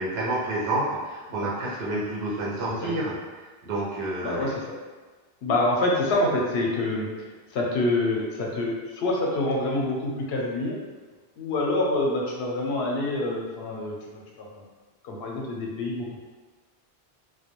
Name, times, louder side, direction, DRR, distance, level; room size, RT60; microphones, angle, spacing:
voice 1, 0.0-3.1 3.6-4.5, right 2 dB, 80° right, -6 dB, 0.8 m, -29 dB
voice 2, 4.2-4.7 5.4-10.8 11.4-14.6 15.0-16.2, left 2 dB, 85° left, -2 dB, 0.8 m, -27 dB
2.2 x 2.2 x 2.9 m, 1.3 s
omnidirectional pair, 1.0 m